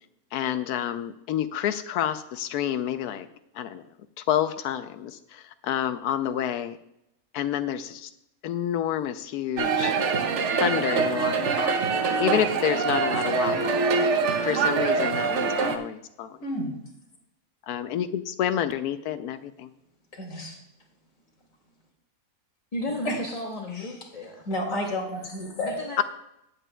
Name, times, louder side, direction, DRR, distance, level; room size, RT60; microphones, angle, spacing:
voice 1, 0.3-3.3 3.6-3.8 4.3-6.8 7.3-8.1 8.4-9.9 10.6-11.8 12.2-13.8 14.4-16.4 17.7-19.7 26.0-26.1, left 10 dB, 85° left, 10 dB, 1.1 m, -28 dB
sound 1, 9.6-15.8, right 5 dB, 55° right, 1.0 m, -24 dB
voice 2, 20.1-20.6 23.1-23.2 23.8-23.9 24.5-25.8, left 1 dB, 60° left, 0 dB, 2.7 m, -31 dB
voice 3, 22.7-24.5 25.6-26.0, left 1 dB, 25° left, 1 dB, 1.0 m, -33 dB
17.5 x 8.4 x 2.2 m, 0.83 s
omnidirectional pair, 1.6 m